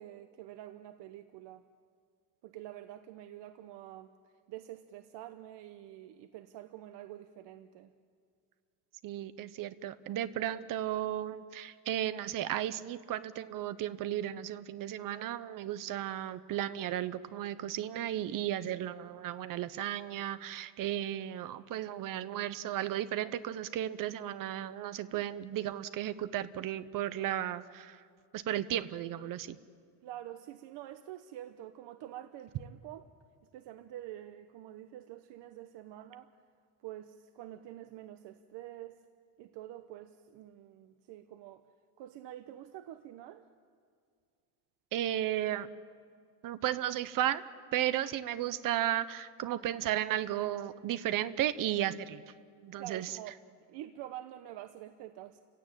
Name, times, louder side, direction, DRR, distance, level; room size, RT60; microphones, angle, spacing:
voice 1, 0.0-1.7 2.4-4.1 4.5-7.9 25.1-25.4 30.0-33.1 33.5-36.3 36.8-39.0 39.4-41.6 42.0-43.5 52.8-53.4 53.7-55.4, right 13 dB, 75° right, 9 dB, 1.0 m, -47 dB
voice 2, 9.0-28.0 28.3-29.6 44.9-45.7 46.4-47.4 47.7-52.2 52.6-53.1, right 12 dB, 50° right, 13 dB, 0.9 m, -34 dB
29.5 x 16.5 x 9.1 m, 2.2 s
cardioid pair, 175°, 42 cm